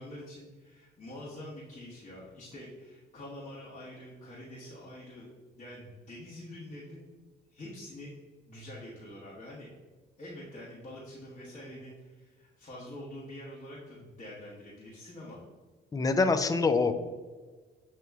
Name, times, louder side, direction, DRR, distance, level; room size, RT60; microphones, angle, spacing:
voice 1, 0.0-5.3 5.6-7.0 7.5-8.1 8.5-9.7 10.2-15.4, left 1 dB, 35° left, -8 dB, 1.3 m, -46 dB
voice 2, 15.9-16.9, left 4 dB, 20° left, 9 dB, 0.4 m, -25 dB
7.8 x 2.9 x 2.3 m, 1.4 s
cardioid pair, 90°, 20 cm